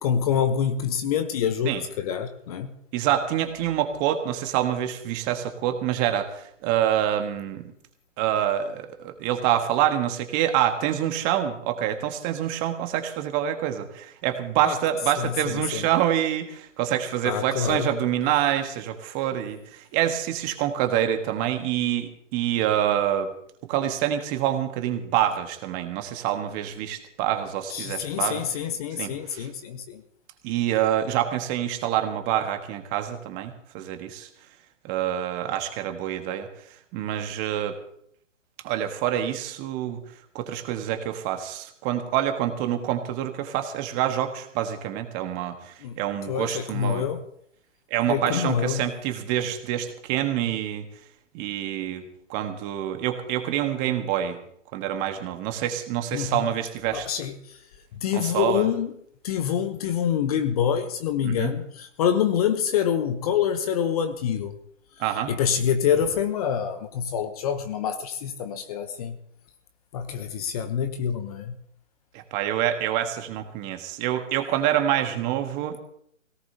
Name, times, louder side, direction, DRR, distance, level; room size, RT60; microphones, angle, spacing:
voice 1, 0.0-2.7 14.6-14.8 15.2-15.9 17.2-17.9 27.7-30.0 45.8-46.0 46.3-47.2 48.1-48.8 56.1-56.5 56.9-57.6 58.0-58.9 59.2-64.6 65.3-69.2 69.9-71.5, left 8 dB, 30° left, 9 dB, 0.9 m, -26 dB
voice 2, 2.9-7.6 8.2-23.3 23.6-28.4 29.0-29.5 30.4-34.3 34.8-36.5 36.9-37.8 38.6-40.0 40.3-47.0 47.9-50.8 51.3-54.4 54.7-57.1 58.1-58.7 61.2-61.5 65.0-65.3 72.1-75.8, right 11 dB, 20° right, 6 dB, 1.4 m, -26 dB
22.0 x 17.5 x 2.8 m, 0.67 s
figure-of-eight pair, 135°, 38 cm